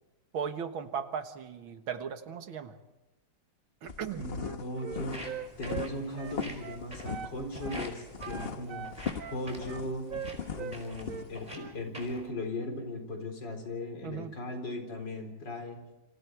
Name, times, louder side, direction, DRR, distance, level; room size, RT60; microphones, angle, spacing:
voice 1, 0.3-2.8 3.8-4.3 14.0-14.4, right 7 dB, 80° right, 8 dB, 2.2 m, -37 dB
sound 1, 3.9-11.5, left 6 dB, 40° left, 0.9 m, -39 dB
voice 2, 4.2-5.2 5.6-8.9 9.3-10.0 10.5-15.8, left 1 dB, 60° left, 4 dB, 4.8 m, -37 dB
Wind instrument woodwind instrument, 4.4-7.4 7.6-7.9 8.2-10.8 11.1-11.8, right 7 dB, 50° right, 1.3 m, -41 dB
Walk footsteps, 4.9-12.3, right 1 dB, 20° right, 5.2 m, -48 dB
29.0 x 27.0 x 4.7 m, 1.0 s
omnidirectional pair, 2.2 m